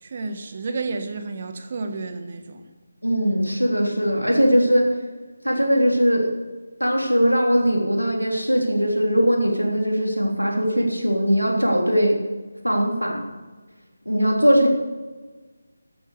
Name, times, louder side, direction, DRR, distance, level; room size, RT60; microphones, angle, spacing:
voice 1, 0.0-2.6, right 3 dB, 35° right, 7 dB, 1.4 m, -31 dB
voice 2, 3.0-4.9 5.4-6.3 6.8-12.2 12.6-13.2 14.0-14.7, equal, 90° right, 0 dB, 3.5 m, -20 dB
14.0 x 8.7 x 6.7 m, 1.3 s
figure-of-eight pair, 155°, 0 cm